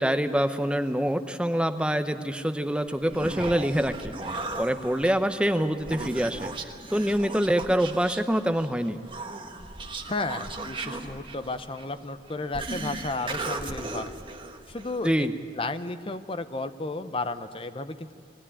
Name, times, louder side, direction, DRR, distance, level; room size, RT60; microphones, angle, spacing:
voice 1, 0.0-6.5 6.9-9.0 15.0-15.3, equal, 5° right, 9 dB, 0.6 m, -25 dB
Human voice, 2.9-15.1, right 2 dB, 30° right, 1.3 m, -37 dB
voice 2, 10.1-14.2 14.7-15.3 15.5-18.1, left 2 dB, 30° left, 10 dB, 0.7 m, -33 dB
21.0 x 16.0 x 9.9 m, 2.3 s
head